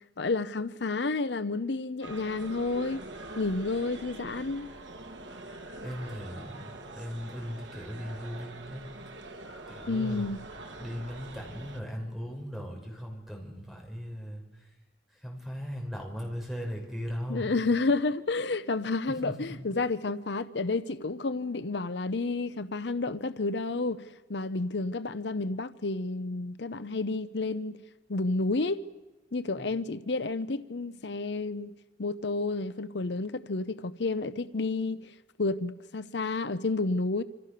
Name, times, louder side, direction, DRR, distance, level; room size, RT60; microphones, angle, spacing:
voice 1, 0.0-3.0 3.4-4.7 9.9-10.4 17.3-27.8 28.1-28.8 29.3-37.2, left 3 dB, 70° left, 0.8 m, -30 dB
sound 1, 2.0-11.8, right 2 dB, 80° right, 2.7 m, -44 dB
voice 2, 5.8-8.8 9.7-10.3 10.8-14.7 15.1-17.6 19.1-19.6 29.6-29.7, equal, ahead, 5.6 m, -38 dB
27.5 x 26.0 x 6.8 m
head